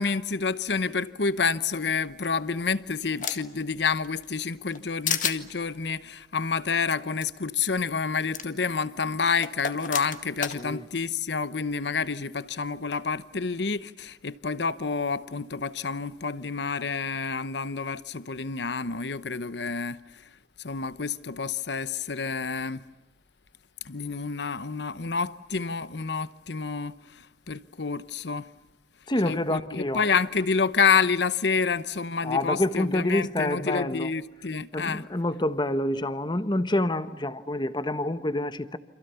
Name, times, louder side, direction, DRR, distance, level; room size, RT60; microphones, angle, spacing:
voice 1, 0.0-20.3 20.6-22.9 23.8-28.5 29.2-35.0, left 5 dB, 70° left, 0.9 m, -28 dB
sound 1, 2.2-3.6 4.0-4.8 5.1-5.4 6.9-7.0 7.2-7.3 8.3-8.4 9.4-10.6, left 8 dB, 45° left, 1.9 m, -31 dB
voice 2, 10.5-10.9 29.1-30.1 32.2-34.1 34.7-38.8, left 1 dB, 25° left, 1.2 m, -27 dB
29.5 x 27.0 x 7.0 m
head